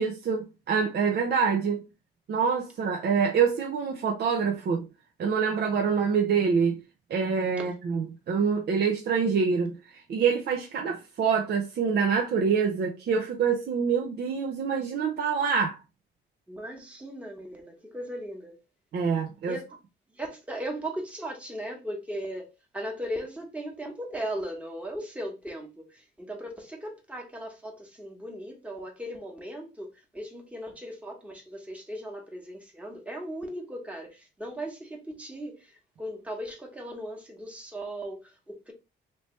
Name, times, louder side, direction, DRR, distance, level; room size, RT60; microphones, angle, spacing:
voice 1, 0.0-1.8 2.3-4.9 5.2-6.8 7.1-9.7 10.1-15.8 18.9-19.6, right 6 dB, 55° right, 0.7 m, -26 dB
voice 2, 16.5-18.6 19.4-19.6 20.1-38.7, right 1 dB, 5° right, 1.2 m, -38 dB
3.2 x 2.9 x 3.1 m
cardioid pair, 90°, 20 cm